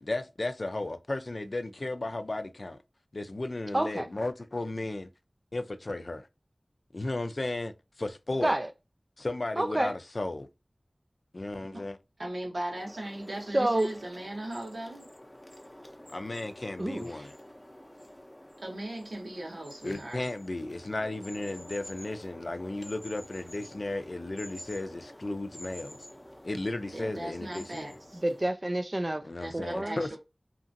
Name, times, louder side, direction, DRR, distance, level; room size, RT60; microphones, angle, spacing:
voice 1, 0.0-2.8 3.1-5.1 5.5-6.3 6.9-7.7 8.0-8.5 9.2-10.5 11.3-12.0 16.1-17.3 19.8-26.0 26.4-28.0 29.2-30.2, left 2 dB, 60° left, 0.4 m, -34 dB
voice 2, 3.7-4.1 8.4-8.7 9.6-9.9 13.5-13.9 16.8-17.3 28.2-29.3 29.5-30.0, right 1 dB, 35° right, 0.3 m, -28 dB
voice 3, 12.2-15.1 18.6-20.2 26.9-28.2 29.4-30.2, right 1 dB, 90° right, 1.2 m, -38 dB
sound 1, 12.7-28.5, equal, 15° left, 0.7 m, -49 dB
2.9 x 2.5 x 2.6 m
wide cardioid pair, 50°, 0 cm